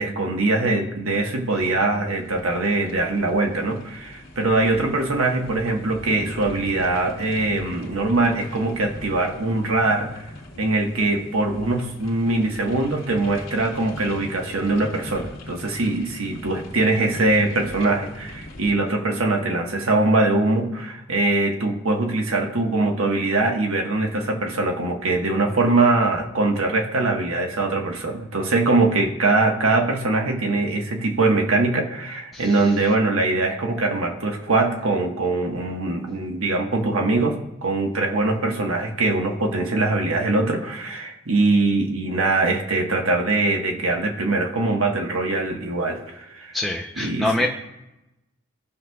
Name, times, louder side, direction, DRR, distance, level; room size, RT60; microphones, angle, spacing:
voice 1, 0.0-10.2 10.6-46.6 47.0-47.5, right 2 dB, 85° right, 2 dB, 1.3 m, -22 dB
sound 1, 1.1-18.8, left 1 dB, 65° left, 1.7 m, -41 dB
voice 2, 46.5-47.5, left 1 dB, ahead, 0 dB, 0.5 m, -25 dB
16.5 x 6.2 x 2.3 m, 0.92 s
head